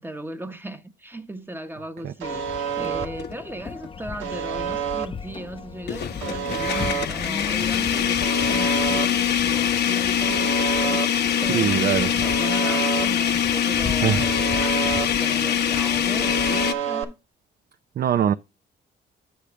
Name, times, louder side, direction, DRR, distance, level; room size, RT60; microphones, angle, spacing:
voice 1, 0.0-2.5 2.8-17.2, right 1 dB, 10° right, 1.0 m, -37 dB
sound 1, 2.2-16.7, left 6 dB, 25° left, 0.6 m, -37 dB
Alarm, 2.2-3.1 4.2-5.1 6.2-7.1 8.2-9.1 10.2-11.1 12.2-13.1 14.2-15.1 16.2-17.0, right 8 dB, 85° right, 1.2 m, -28 dB
sound 2, 3.2-3.3 3.8-3.9 5.9-16.7, left 9 dB, 60° left, 0.9 m, -23 dB
voice 2, 11.5-12.1 14.0-14.3 18.0-18.3, right 9 dB, 50° right, 0.5 m, -22 dB
8.5 x 6.6 x 3.3 m
cardioid pair, 90°, 20 cm